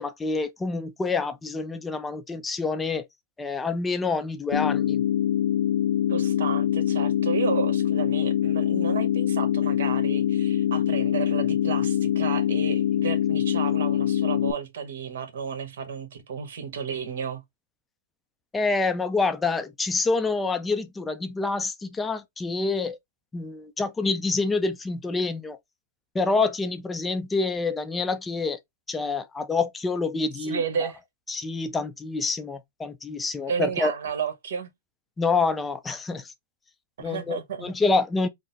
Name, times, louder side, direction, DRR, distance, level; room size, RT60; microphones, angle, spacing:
voice 1, 0.0-3.0 3.4-5.0 18.5-23.0 23.3-25.6 26.1-28.6 28.9-30.9 31.3-33.9 35.2-36.2 37.0-38.3, left 3 dB, 10° left, 0.5 m, -27 dB
sound 1, 4.5-14.5, left 11 dB, 70° left, 0.5 m, -24 dB
voice 2, 6.1-17.4 30.4-31.0 33.5-34.7 37.0-37.7, right 6 dB, 70° right, 1.3 m, -32 dB
3.8 x 2.1 x 3.9 m
hypercardioid pair, 140°, 0 cm